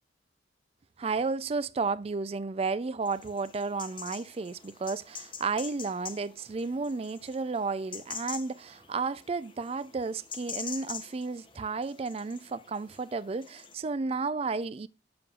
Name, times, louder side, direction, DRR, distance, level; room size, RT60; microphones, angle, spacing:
voice 1, 1.0-14.9, right 4 dB, 30° right, 0.3 m, -32 dB
sound 1, 3.0-13.7, left 6 dB, 25° left, 0.7 m, -45 dB
6.9 x 6.8 x 2.4 m
head